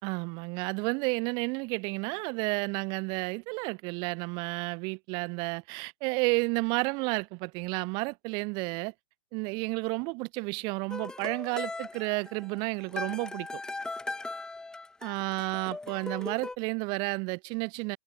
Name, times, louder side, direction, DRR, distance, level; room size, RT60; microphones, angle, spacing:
voice 1, 0.0-8.9 9.3-13.5 15.0-18.0, right 31 dB, 30° right, 4.7 m, -31 dB
sound 1, 10.9-16.5, left 3 dB, 5° left, 2.1 m, -39 dB
hypercardioid pair, 155°, 15 cm